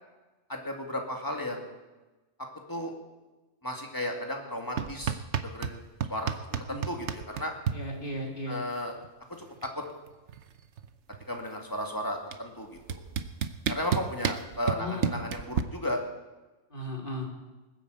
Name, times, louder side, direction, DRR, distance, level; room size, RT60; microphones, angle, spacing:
voice 1, 0.5-1.8 2.7-2.9 3.6-5.2 5.4-5.8 6.1-6.3 6.7-7.5 8.5-8.9 9.7-9.8 11.3-13.0 13.7-16.0, left 1 dB, 15° left, 1 dB, 2.3 m, -34 dB
sound 1, 4.8-5.8 6.0-7.8 9.0-9.1 9.4-9.8 10.1-11.4 12.3-12.4 12.9-15.6, right 8 dB, 70° right, 1.1 m, -30 dB
voice 2, 6.5-6.9 7.7-8.6 14.8-15.2 16.7-17.3, left 1 dB, 45° left, 0 dB, 3.2 m, -36 dB
20.0 x 9.1 x 8.0 m, 1.1 s
omnidirectional pair, 1.2 m